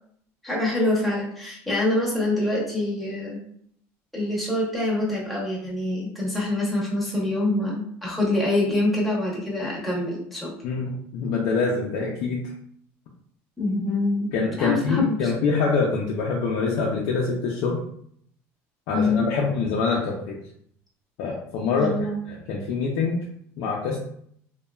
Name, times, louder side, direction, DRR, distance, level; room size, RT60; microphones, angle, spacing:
voice 1, 0.4-3.4 4.1-10.5 13.6-15.3 18.9-19.2 21.8-22.2, left 2 dB, ahead, -5 dB, 0.8 m, -25 dB
voice 2, 10.6-12.4 14.3-17.8 18.9-20.4 21.2-21.9 22.3-23.2 23.6-24.0, left 4 dB, 70° left, -3 dB, 0.5 m, -25 dB
3.0 x 2.2 x 2.2 m, 0.66 s
cardioid pair, 140°, 6 cm